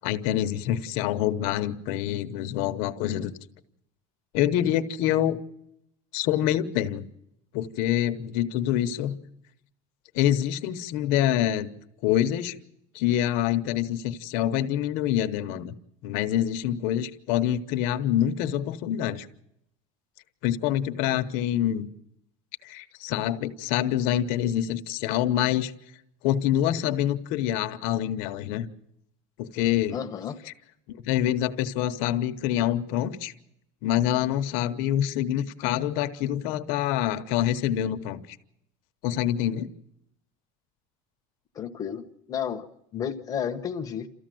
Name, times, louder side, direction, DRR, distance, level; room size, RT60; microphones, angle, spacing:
voice 1, 0.0-3.3 4.3-5.4 6.1-7.0 7.5-9.2 10.1-11.7 12.0-12.5 12.9-15.7 16.0-19.3 20.4-21.9 22.6-25.7 26.2-28.7 29.4-30.0 30.9-33.3 33.8-38.4 39.0-39.7, left 11 dB, 55° left, 1.0 m, -26 dB
voice 2, 29.9-30.4 41.5-44.1, left 8 dB, 20° left, 1.0 m, -32 dB
28.5 x 14.5 x 7.7 m
cardioid pair, 170°, 17 cm